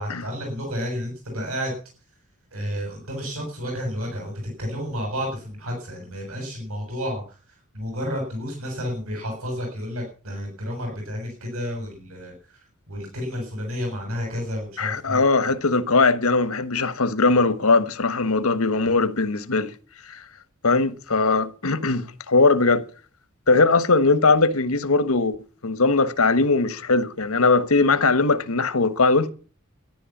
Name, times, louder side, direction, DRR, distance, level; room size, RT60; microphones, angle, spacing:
voice 1, 0.0-1.7 2.5-7.2 7.7-12.6 12.9-15.2, equal, 80° right, 6.9 m, -31 dB
voice 2, 14.8-19.7 20.1-20.2 20.6-22.8 23.5-25.4 25.6-29.3, left 3 dB, 90° left, 1.3 m, -20 dB
13.0 x 11.0 x 7.3 m
head